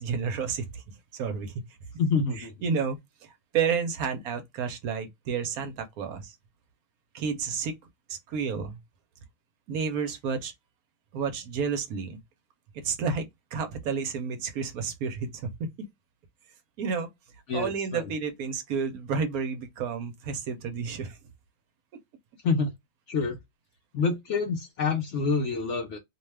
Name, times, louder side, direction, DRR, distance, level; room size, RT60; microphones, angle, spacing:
voice 1, 0.0-1.5 2.4-3.0 3.5-6.3 7.1-7.8 8.1-8.8 9.7-10.5 11.1-12.2 12.8-15.9 16.8-17.1 17.5-21.2 21.9-22.0, right 6 dB, 70° right, 1.1 m, -31 dB
voice 2, 2.0-2.5 17.5-18.1 22.4-22.7 23.1-23.4 23.9-26.0, left 4 dB, 65° left, 0.7 m, -27 dB
2.7 x 2.2 x 3.1 m
omnidirectional pair, 1.6 m